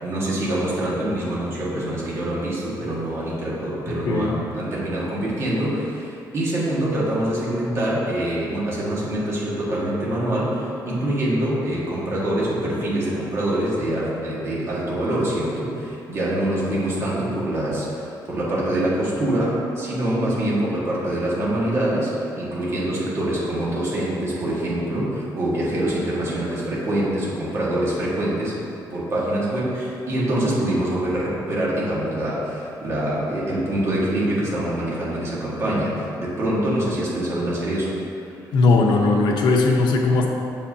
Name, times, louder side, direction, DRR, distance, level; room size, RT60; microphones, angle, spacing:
voice 1, 0.0-28.6 28.9-38.0, right 1 dB, 35° right, -6 dB, 1.7 m, -25 dB
voice 2, 4.1-4.4 38.5-40.3, left 3 dB, 80° left, 0 dB, 0.9 m, -18 dB
7.5 x 7.3 x 2.8 m, 2.7 s
cardioid pair, 175°, 8 cm